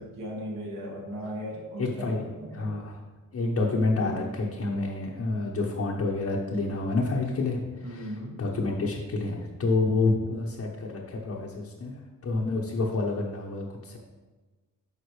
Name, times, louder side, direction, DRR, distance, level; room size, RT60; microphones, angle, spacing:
voice 1, 0.0-2.8 7.8-8.4, equal, 75° right, -3 dB, 2.3 m, -37 dB
voice 2, 1.8-2.2 2.6-3.0 3.3-8.1 8.4-12.0 12.2-14.0, left 3 dB, 45° left, -3 dB, 1.1 m, -28 dB
9.6 x 5.3 x 3.3 m, 1.3 s
cardioid pair, 95°, 33 cm